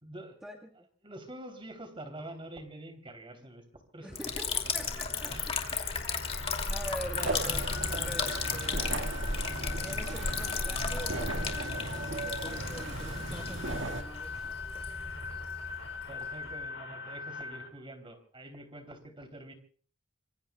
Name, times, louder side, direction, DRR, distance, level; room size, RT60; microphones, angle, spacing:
voice 1, 0.0-0.4 1.0-5.5 7.4-8.3 16.1-19.5, right 1 dB, 25° right, 6 dB, 3.2 m, -47 dB
sound 1, 4.0-17.7, left 5 dB, 75° left, 2.8 m, -42 dB
voice 2, 4.0-5.6 6.7-7.6 8.0-9.4 9.7-14.6, equal, 5° right, 1 dB, 1.4 m, -45 dB
Liquid, 4.2-16.6, left 4 dB, 30° left, 2.6 m, -35 dB
sound 2, 7.2-14.0, right 2 dB, 70° right, 1.8 m, -37 dB
25.5 x 24.5 x 2.3 m, 0.43 s
head